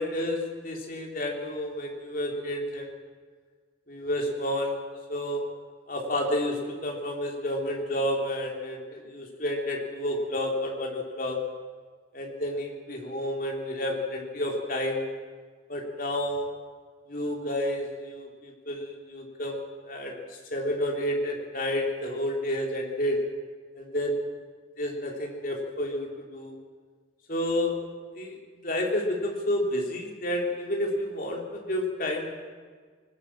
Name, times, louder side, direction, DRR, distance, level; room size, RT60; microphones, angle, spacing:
voice 1, 0.0-2.9 3.9-4.8 5.1-5.4 5.9-11.4 12.1-15.1 15.7-16.5 17.1-20.1 20.5-23.2 23.8-24.3 24.8-26.6 27.3-27.8 28.2-32.3, left 1 dB, 45° left, 0 dB, 3.5 m, -30 dB
20.0 x 19.0 x 7.6 m, 1.6 s
head